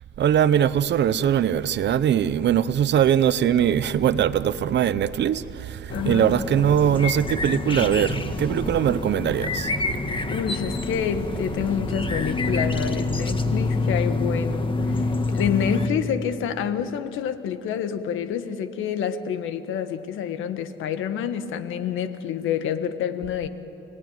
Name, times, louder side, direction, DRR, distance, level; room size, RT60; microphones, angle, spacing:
voice 1, 0.2-9.7, right 9 dB, 60° right, 0.8 m, -21 dB
voice 2, 5.9-6.3 10.3-23.5, left 8 dB, 85° left, 1.5 m, -28 dB
sound 1, 5.9-15.9, left 3 dB, 25° left, 1.8 m, -27 dB
29.5 x 18.5 x 9.5 m
cardioid pair, 90°, 20 cm